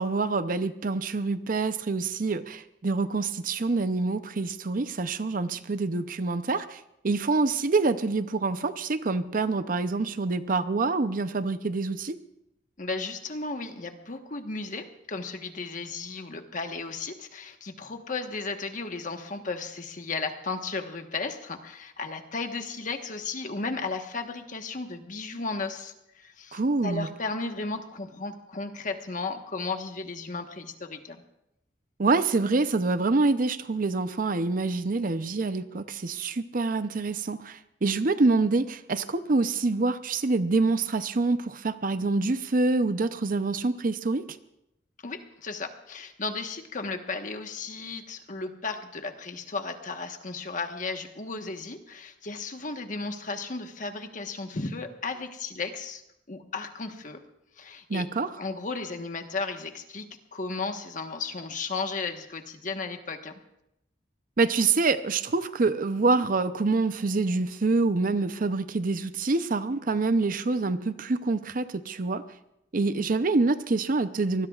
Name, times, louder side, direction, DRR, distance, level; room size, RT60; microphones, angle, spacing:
voice 1, 0.0-12.2 26.5-27.1 32.0-44.2 57.9-58.3 64.4-72.2 72.7-74.5, right 3 dB, 50° right, 12 dB, 0.6 m, -26 dB
voice 2, 12.8-31.2 45.0-56.0 56.3-57.2 57.6-58.0 58.4-63.4, left 3 dB, 50° left, 5 dB, 1.3 m, -35 dB
24.5 x 20.0 x 2.4 m, 0.84 s
head